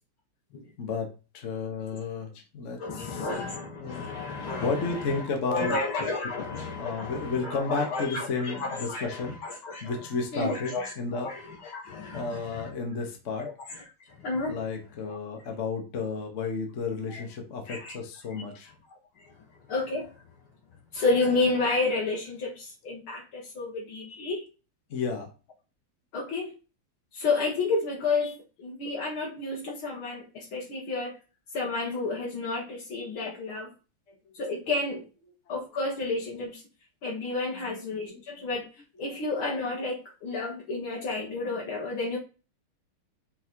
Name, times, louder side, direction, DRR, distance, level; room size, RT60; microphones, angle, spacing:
voice 1, 0.8-3.3 3.8-4.1 4.6-5.7 6.4-9.4 9.8-11.3 12.1-13.5 14.5-18.7 24.9-25.3 34.1-34.2 37.5-38.5 39.0-39.2, left 4 dB, 40° left, 2 dB, 1.4 m, -33 dB
voice 2, 2.8-5.2 5.5-9.9 10.3-10.9 11.2-12.7 14.2-14.6 17.1-17.2 17.7-17.9 19.7-20.1 20.9-24.4 26.1-26.5 27.1-31.2 31.5-33.7 34.4-35.0 35.5-36.6 37.0-38.6 39.0-42.2, left 3 dB, 75° left, -4 dB, 2.5 m, -31 dB
5.9 x 4.1 x 4.6 m, 0.32 s
omnidirectional pair, 2.3 m